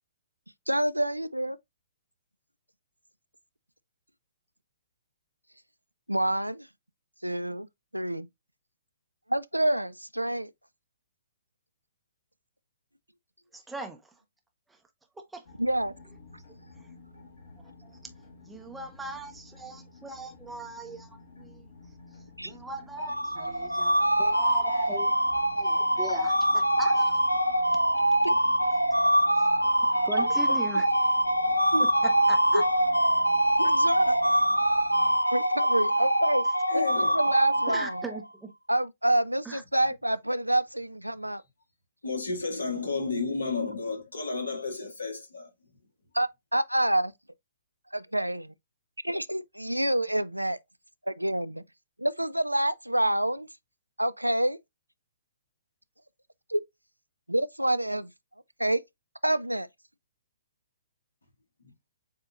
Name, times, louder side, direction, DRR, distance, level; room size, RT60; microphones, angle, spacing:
voice 1, 0.7-1.6 6.1-6.7 7.2-7.7 7.9-8.3 9.3-10.5 15.6-15.9 22.4-22.5 28.2-28.7 30.2-30.3 31.7-31.9 32.5-32.6 33.6-34.2 35.3-36.4 36.7-38.0 38.7-41.4 46.1-47.1 47.9-48.5 49.0-50.6 51.1-51.6 52.0-53.5 54.0-54.6 56.5-56.6 57.3-58.1 58.6-58.8 59.2-59.7, right 1 dB, 90° right, 0.4 m, -27 dB
voice 2, 13.5-14.1 14.7-14.8 15.2-15.5 18.5-21.7 22.4-25.2 25.5-27.2 29.3-29.5 29.8-30.9 31.8-32.6 37.7-38.5 39.4-39.6, right 2 dB, 5° right, 0.7 m, -40 dB
sound 1, 15.5-35.2, left 3 dB, 50° left, 1.6 m, -51 dB
sound 2, 23.0-38.2, right 1 dB, 90° left, 0.4 m, -24 dB
voice 3, 36.7-37.2 42.0-45.5, left 3 dB, 70° left, 1.9 m, -32 dB
7.4 x 2.8 x 2.4 m
figure-of-eight pair, 125°, 0 cm